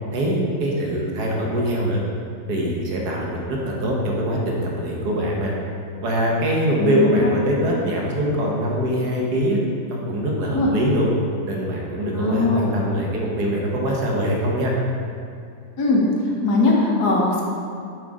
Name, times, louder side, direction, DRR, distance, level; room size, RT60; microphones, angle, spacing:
voice 1, 0.1-2.0 2.5-5.5 6.0-9.6 9.9-11.1 11.5-14.7, equal, 85° right, -2 dB, 1.8 m, -23 dB
voice 2, 6.8-7.3 10.5-10.7 12.2-12.7 15.8-16.1 16.4-17.4, left 3 dB, 75° left, -3 dB, 1.8 m, -20 dB
7.8 x 5.1 x 4.9 m, 2.4 s
omnidirectional pair, 1.7 m